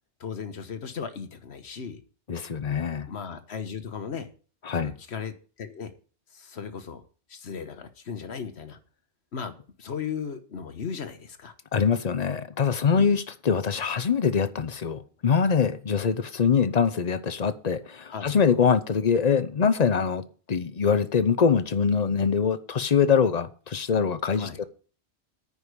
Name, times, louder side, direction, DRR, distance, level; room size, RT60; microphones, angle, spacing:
voice 1, 0.2-2.0 3.1-4.3 4.8-5.9 6.3-7.0 7.3-8.8 9.3-11.5 18.1-18.3 24.3-24.6, left 6 dB, 70° left, 9 dB, 1.4 m, -36 dB
voice 2, 2.3-3.1 4.7-4.9 11.7-24.6, left 6 dB, 40° left, 13 dB, 0.8 m, -24 dB
9.7 x 5.4 x 8.1 m, 0.39 s
omnidirectional pair, 1.2 m